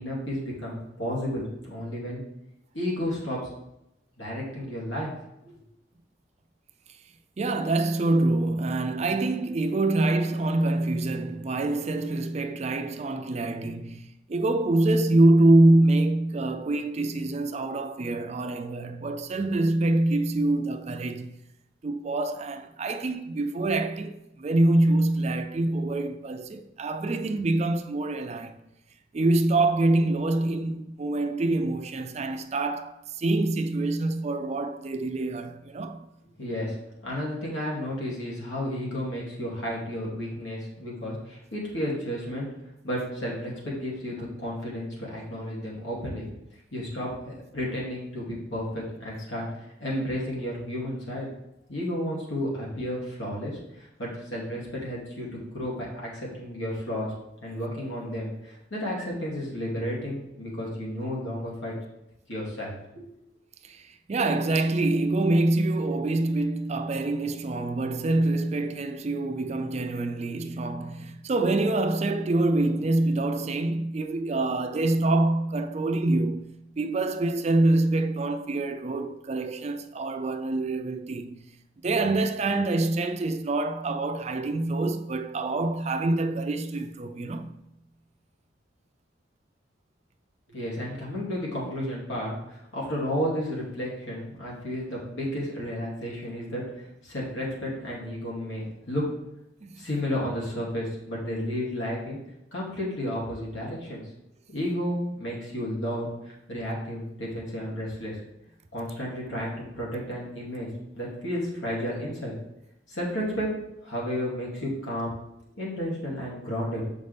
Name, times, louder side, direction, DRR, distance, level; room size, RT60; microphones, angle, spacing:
voice 1, 0.0-2.2 2.7-3.5 4.2-5.1 5.4-5.6 36.4-36.8 37.0-42.5 42.8-46.3 46.7-49.5 49.8-51.3 51.7-57.1 57.4-61.7 62.3-63.1 90.5-99.0 99.8-102.2 102.5-104.0 104.5-108.2 108.7-110.7 111.0-112.3 112.9-113.5 113.8-115.2 115.6-116.8, equal, 90° left, 2.6 m, -32 dB
voice 2, 7.4-21.4 21.8-28.6 29.1-36.1 63.6-81.4 81.8-87.6 99.6-99.8, right 2 dB, 35° right, 0.4 m, -25 dB
7.3 x 5.4 x 3.4 m
head